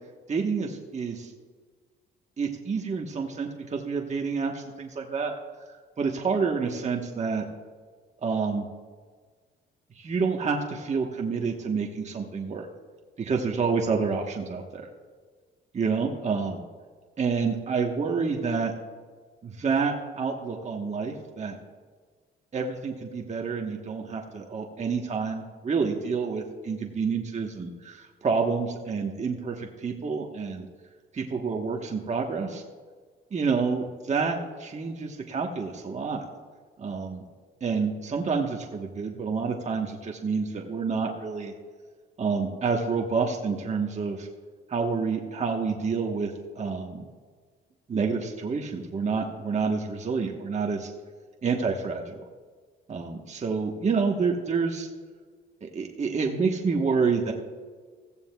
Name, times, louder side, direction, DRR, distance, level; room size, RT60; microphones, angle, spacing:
voice 1, 0.3-1.3 2.4-5.3 6.0-7.4 8.2-8.6 10.0-12.7 13.2-14.9 15.7-16.6 17.2-18.7 19.4-21.6 22.5-30.7 31.1-32.6 33.3-36.2 36.8-37.2 37.6-41.5 42.2-44.3 44.7-47.0 47.9-50.9 51.4-52.2 52.9-54.9 55.6-57.3, right 5 dB, 35° right, 1 dB, 1.2 m, -28 dB
15.5 x 15.0 x 2.3 m, 1.5 s
cardioid pair, 90°, 20 cm